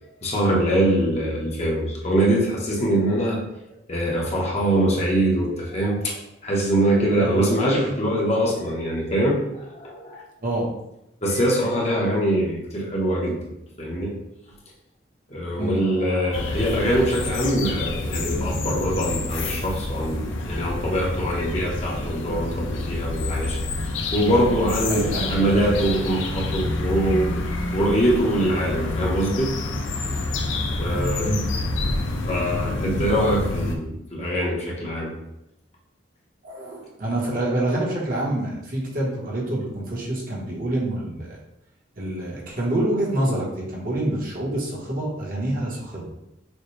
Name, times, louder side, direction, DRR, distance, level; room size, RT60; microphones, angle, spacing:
voice 1, 0.2-3.4 3.9-6.1 6.4-10.2 11.2-13.4 13.8-14.1 15.3-23.6 24.1-27.4 27.7-29.5 30.8-31.3 31.8-32.0 32.3-35.1, right 1 dB, 35° left, -3 dB, 0.9 m, -23 dB
voice 2, 7.2-7.5 9.9-10.1 10.4-10.7 11.7-12.0 15.5-16.5 24.9-25.4 28.3-28.7 31.2-31.4 33.0-33.2 36.4-41.4 42.0-46.1, right 1 dB, 45° right, -4 dB, 1.1 m, -27 dB
sound 1, 16.3-33.8, left 2 dB, 85° left, 0.6 m, -28 dB
6.3 x 2.2 x 3.2 m, 0.86 s
head